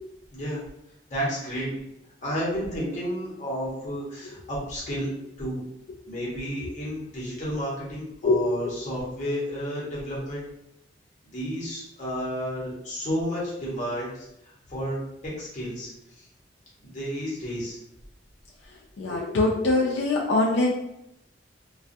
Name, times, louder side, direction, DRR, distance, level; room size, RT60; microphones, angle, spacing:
voice 1, 0.3-0.6 1.1-1.7 2.2-5.6 6.1-10.4 11.3-15.0 15.2-16.3 16.8-17.8, equal, 40° left, -7 dB, 1.0 m, -32 dB
voice 2, 8.2-8.8 19.0-20.7, left 2 dB, 80° left, -3 dB, 0.4 m, -23 dB
2.3 x 2.2 x 2.6 m, 0.82 s
head